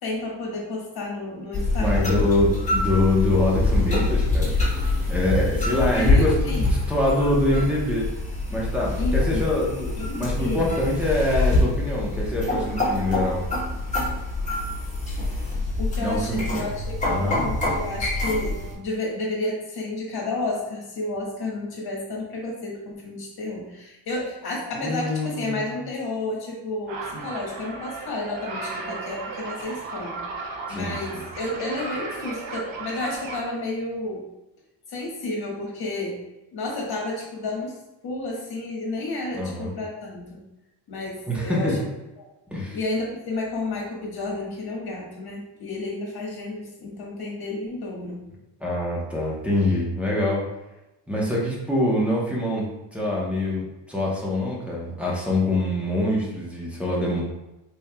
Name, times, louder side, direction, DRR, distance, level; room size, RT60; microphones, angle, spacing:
voice 1, 0.0-2.2 5.9-6.7 9.0-9.4 10.0-10.7 15.8-30.2 30.7-34.2 34.9-36.2 36.5-37.8 38.0-40.4 40.9-41.8 42.2-42.3 42.7-48.2, left 2 dB, 55° left, -3 dB, 1.4 m, -31 dB
sound 1, 1.5-18.7, left 2 dB, 15° left, 1.4 m, -25 dB
voice 2, 1.8-4.5 5.1-6.6 6.9-8.1 8.5-13.4 16.0-16.5 17.1-17.4 24.7-25.7 30.7-31.2 39.3-39.7 41.3-41.8 42.5-42.8 48.6-50.4 51.1-52.7 52.9-57.2, left 1 dB, 5° right, -5 dB, 0.9 m, -24 dB
sound 2, 26.9-33.5, right 3 dB, 85° right, 0.8 m, -35 dB
4.3 x 3.5 x 2.2 m, 0.98 s
cardioid pair, 125°, 45 cm